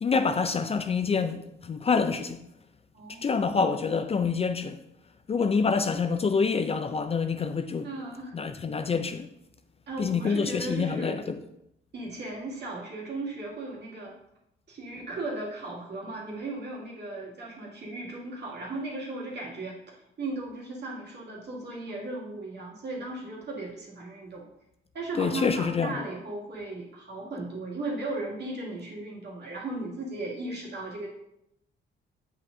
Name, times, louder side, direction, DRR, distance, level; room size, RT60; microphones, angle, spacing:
voice 1, 0.0-2.4 3.1-4.8 5.3-7.9 8.3-9.3 10.0-11.4 25.2-26.0, left 5 dB, 30° left, 0.4 m, -27 dB
voice 2, 2.9-3.3 7.8-8.3 9.9-11.2 11.9-14.2 14.7-24.4 24.9-31.1, right 2 dB, 60° right, 2.3 m, -36 dB
7.5 x 5.4 x 2.6 m
cardioid pair, 90°, 20 cm